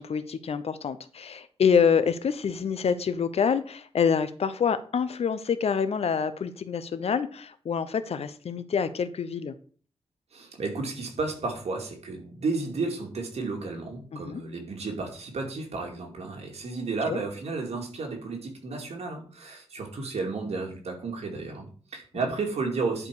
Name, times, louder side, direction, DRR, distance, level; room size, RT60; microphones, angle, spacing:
voice 1, 0.0-9.5 14.1-14.4 17.1-17.2, left 6 dB, 70° left, 13 dB, 0.8 m, -26 dB
voice 2, 10.3-23.1, right 3 dB, 80° right, 1 dB, 2.5 m, -32 dB
11.0 x 5.0 x 4.9 m, 0.43 s
wide cardioid pair, 130°, 11 cm